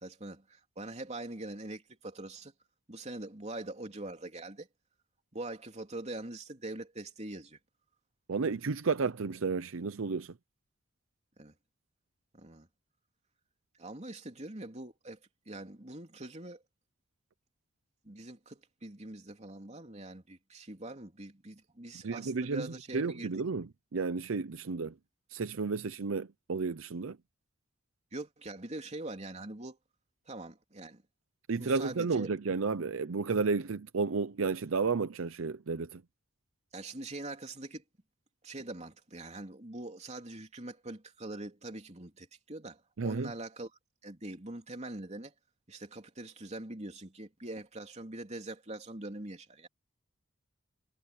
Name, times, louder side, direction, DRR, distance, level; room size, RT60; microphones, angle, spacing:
voice 1, 0.0-2.5 2.9-4.7 5.3-7.6 11.4-11.5 12.3-12.7 13.8-15.2 15.4-16.6 18.0-23.4 28.1-29.8 30.3-31.0 31.5-32.3 36.7-37.8 38.4-43.7 44.0-45.3 45.7-49.7, right 2 dB, 35° right, 3.2 m, -43 dB
voice 2, 8.3-10.3 22.0-22.7 22.9-23.7 23.9-24.9 25.3-27.2 31.5-36.0 43.0-43.3, right 4 dB, 80° right, 0.6 m, -32 dB
head